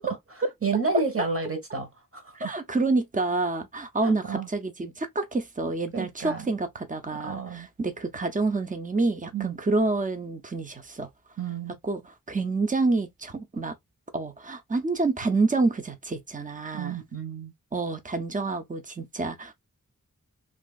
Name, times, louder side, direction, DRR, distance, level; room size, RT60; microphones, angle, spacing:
voice 1, 0.6-2.5 4.0-4.5 5.9-6.5 7.1-7.7 9.3-9.6 11.4-11.7 16.7-17.5, right 4 dB, 40° right, 1.2 m, -31 dB
voice 2, 2.3-11.1 11.8-12.0 12.3-13.7 14.1-17.0 17.7-19.5, right 3 dB, 25° right, 0.6 m, -28 dB
2.9 x 2.6 x 2.3 m
wide cardioid pair, 65°, 33 cm